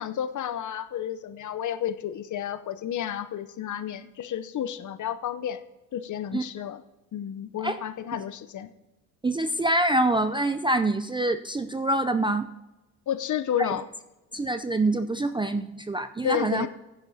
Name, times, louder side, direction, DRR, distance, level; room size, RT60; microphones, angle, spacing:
voice 1, 0.0-5.6 5.9-6.8 7.1-8.7 13.1-13.9 16.2-16.7, left 9 dB, 45° left, 13 dB, 0.8 m, -31 dB
voice 2, 9.2-12.5 13.6-13.7 14.3-16.7, right 2 dB, 10° right, 9 dB, 0.5 m, -25 dB
15.5 x 10.5 x 2.8 m, 1.0 s
hypercardioid pair, 65°, 43 cm